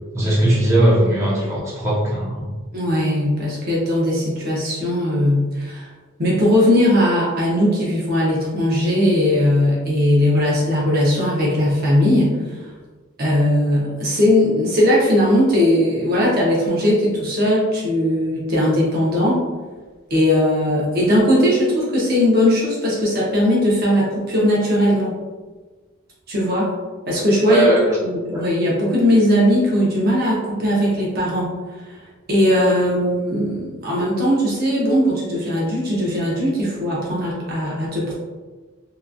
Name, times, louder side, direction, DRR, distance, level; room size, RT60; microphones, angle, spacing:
voice 1, 0.1-2.5 27.5-28.0 28.3-28.5, right 1 dB, 15° right, -8 dB, 0.7 m, -18 dB
voice 2, 2.7-5.9 6.2-12.4 13.2-19.4 20.1-25.1 26.3-26.7 27.1-27.7 28.0-31.5 32.3-38.1, left 1 dB, 50° right, -5 dB, 0.7 m, -18 dB
2.9 x 2.4 x 2.3 m, 1.3 s
head